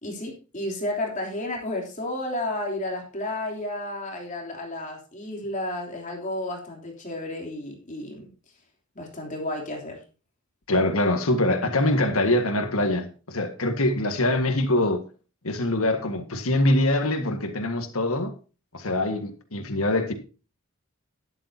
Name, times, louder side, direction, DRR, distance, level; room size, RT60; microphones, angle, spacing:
voice 1, 0.0-8.3 8.9-10.0, left 1 dB, 35° left, 3.2 m, -32 dB
voice 2, 10.7-15.0 15.4-18.3 18.7-20.1, left 1 dB, 75° left, 1.7 m, -24 dB
12.5 x 11.0 x 2.8 m
head